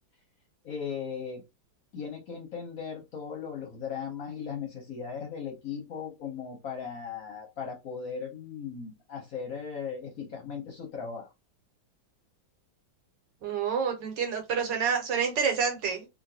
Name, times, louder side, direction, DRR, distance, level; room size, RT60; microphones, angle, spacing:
voice 1, 0.6-1.4 1.9-11.3, left 6 dB, 60° left, 1.0 m, -37 dB
voice 2, 13.4-16.1, right 6 dB, 65° right, 1.4 m, -28 dB
3.1 x 2.6 x 2.7 m
omnidirectional pair, 2.1 m